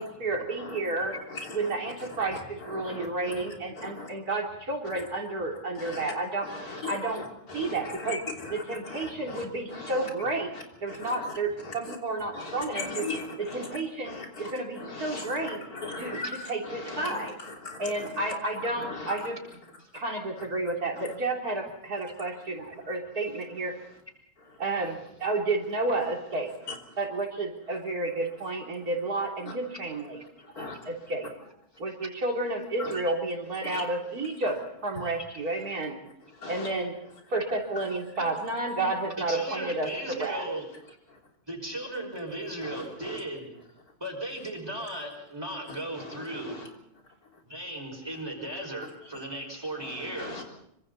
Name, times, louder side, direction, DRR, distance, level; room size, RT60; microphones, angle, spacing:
voice 1, 0.0-1.1 1.5-7.2 7.5-8.2 8.5-10.5 10.8-13.1 13.4-15.6 16.0-17.4 17.8-19.4 19.9-23.7 24.6-26.5 27.0-30.2 30.5-31.3 31.8-36.0 36.5-36.9 37.3-40.5, right 2 dB, 85° right, 0 dB, 4.1 m, -31 dB
voice 2, 1.3-1.7 2.7-3.3 3.8-4.1 5.8-6.1 6.4-9.4 9.7-10.1 11.0-11.3 11.6-12.0 12.3-13.7 14.1-14.5 14.8-18.1 18.7-19.2 30.6-30.8 32.8-32.9 33.7-33.8 36.4-36.7 42.6-43.2 46.0-46.6 49.8-50.4, left 3 dB, 85° left, 1 dB, 3.8 m, -39 dB
voice 3, 9.1-9.5 19.8-19.9 30.6-30.7 33.6-33.7 35.0-35.1 39.3-41.0 41.5-43.5 44.0-46.7 47.4-50.4, right 1 dB, 15° right, 1 dB, 5.9 m, -37 dB
26.0 x 25.0 x 4.2 m, 0.76 s
omnidirectional pair, 1.6 m